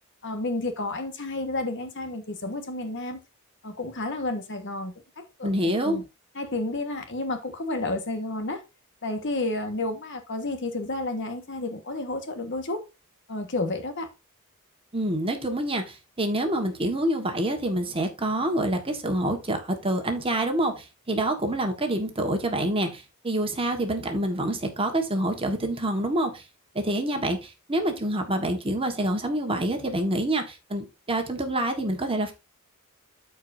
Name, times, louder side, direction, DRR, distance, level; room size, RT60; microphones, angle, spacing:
voice 1, 0.2-3.2 3.6-6.0 6.3-8.6 9.0-12.8 13.3-14.1, left 2 dB, 55° left, 1.4 m, -31 dB
voice 2, 5.4-6.0 14.9-26.4 26.7-32.3, right 1 dB, 25° right, 1.4 m, -27 dB
13.5 x 4.7 x 2.6 m
head